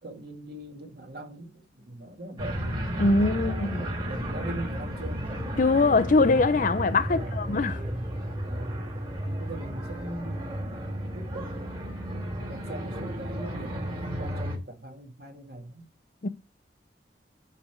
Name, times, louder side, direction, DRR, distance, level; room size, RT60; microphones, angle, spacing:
voice 1, 0.0-2.7 3.6-5.2 7.1-8.1 8.4-8.9 9.3-10.7 11.1-11.8 12.4-15.8, right 1 dB, 55° right, 1.9 m, -41 dB
sound 1, 2.4-14.6, equal, 30° right, 2.5 m, -33 dB
voice 2, 3.0-3.8 5.6-7.8 16.2-16.3, left 3 dB, 45° left, 0.5 m, -22 dB
9.3 x 3.4 x 6.7 m
head